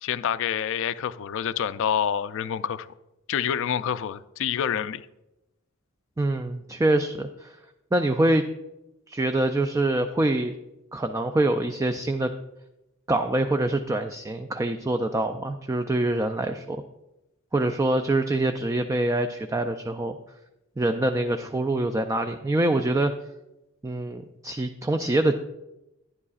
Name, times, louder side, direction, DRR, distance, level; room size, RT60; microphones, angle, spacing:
voice 1, 0.0-2.9 3.3-5.0, left 8 dB, 65° left, 14 dB, 0.4 m, -27 dB
voice 2, 6.2-7.6 7.9-8.5 9.1-10.5 10.9-12.3 13.1-16.8 17.5-20.2 20.8-23.1 23.8-25.3, right 2 dB, 15° right, 7 dB, 0.3 m, -25 dB
11.0 x 10.5 x 2.4 m, 0.95 s
head